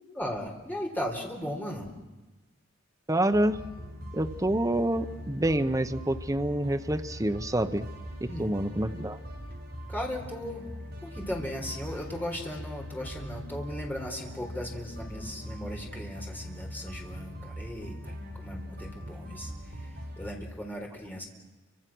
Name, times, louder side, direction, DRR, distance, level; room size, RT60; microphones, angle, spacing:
voice 1, 0.0-1.9 8.3-8.6 9.9-10.6 11.0-21.2, left 1 dB, 10° left, 1 dB, 4.2 m, -37 dB
voice 2, 3.1-3.6 4.1-7.9 8.2-9.2, right 1 dB, 15° right, 7 dB, 0.9 m, -27 dB
sound 1, 3.3-20.3, equal, 50° right, 7.7 m, -41 dB
30.0 x 25.5 x 6.2 m, 1.1 s
head